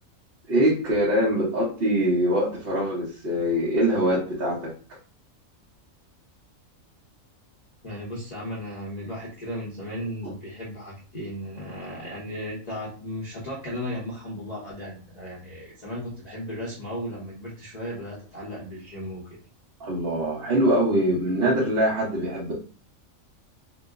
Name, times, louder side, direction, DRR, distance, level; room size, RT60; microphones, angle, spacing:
voice 1, 0.5-4.7 10.2-10.3 19.8-22.5, right 1 dB, 50° right, -6 dB, 1.1 m, -23 dB
voice 2, 7.8-19.3, equal, 35° left, -7 dB, 0.9 m, -35 dB
3.0 x 2.1 x 3.6 m, 0.38 s
omnidirectional pair, 1.4 m